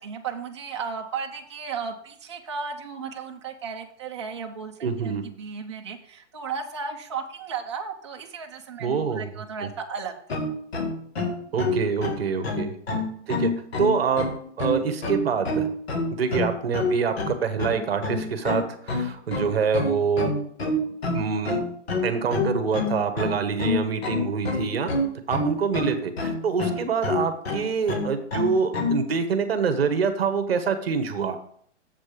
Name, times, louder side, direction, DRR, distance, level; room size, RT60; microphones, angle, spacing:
voice 1, 0.0-10.1, right 5 dB, 25° right, 2 dB, 0.7 m, -35 dB
voice 2, 4.8-5.2 8.8-9.3 11.5-12.7 13.3-13.5 13.8-15.7 16.1-20.3 21.1-21.6 22.0-24.9 25.3-31.4, right 5 dB, 55° right, 8 dB, 1.1 m, -26 dB
sound 1, 10.3-29.0, left 2 dB, 60° left, 1.8 m, -27 dB
7.5 x 5.2 x 6.7 m, 0.62 s
hypercardioid pair, 175°, 36 cm